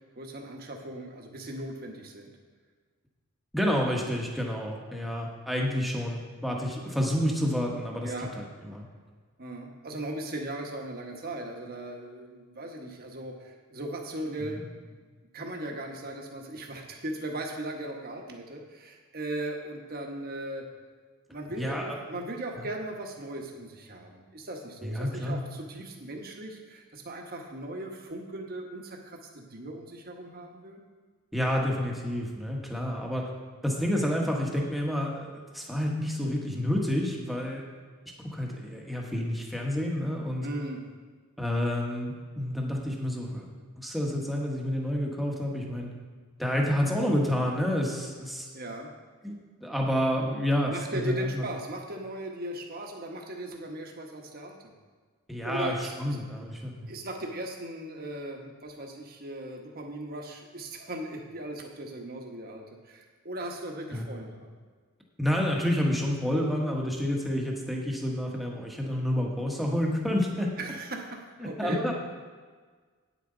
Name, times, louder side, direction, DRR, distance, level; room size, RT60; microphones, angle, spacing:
voice 1, 0.0-2.3 6.8-6.9 8.0-8.3 9.4-14.7 15.3-20.7 21.3-30.8 40.4-40.8 48.5-48.9 50.7-54.6 55.4-56.2 56.9-64.5 70.6-71.8, right 1 dB, 45° right, 2 dB, 1.2 m, -38 dB
voice 2, 3.5-8.8 14.4-14.6 21.6-22.0 24.8-25.4 31.3-33.2 33.6-37.6 38.3-40.5 41.4-43.5 43.8-45.9 46.4-48.5 49.2-51.4 55.3-56.9 63.9-64.0 65.2-70.5 71.4-71.9, equal, ahead, -2 dB, 1.2 m, -29 dB
9.4 x 9.2 x 3.9 m, 1.5 s
head